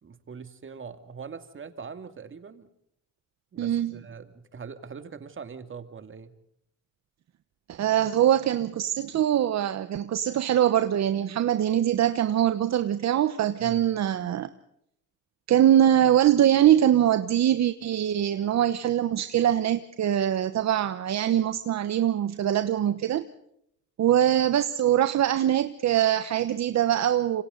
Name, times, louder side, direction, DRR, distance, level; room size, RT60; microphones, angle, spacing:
voice 1, 0.0-2.7 3.5-6.3 13.6-13.9, right 6 dB, 40° right, 9 dB, 2.5 m, -42 dB
voice 2, 3.6-4.0 7.7-14.5 15.5-23.3 24.0-27.4, right 11 dB, 60° right, 11 dB, 1.1 m, -23 dB
27.0 x 24.5 x 4.0 m, 0.73 s
cardioid pair, 90°, 30 cm